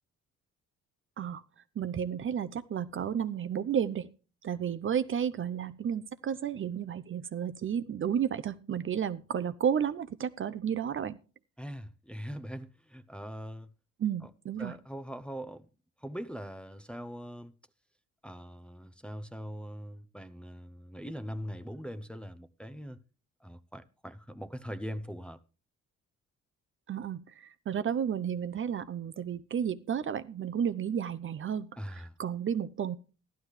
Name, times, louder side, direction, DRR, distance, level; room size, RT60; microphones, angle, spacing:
voice 1, 1.8-4.1 4.4-11.2 14.0-14.7 26.9-33.0, right 8 dB, 40° right, 0.6 m, -32 dB
voice 2, 11.6-13.7 14.6-15.7 16.0-17.5 18.2-23.0 23.4-25.4 31.8-32.1, equal, 5° left, 0.6 m, -41 dB
13.5 x 11.5 x 3.2 m
cardioid pair, 90°, 30 cm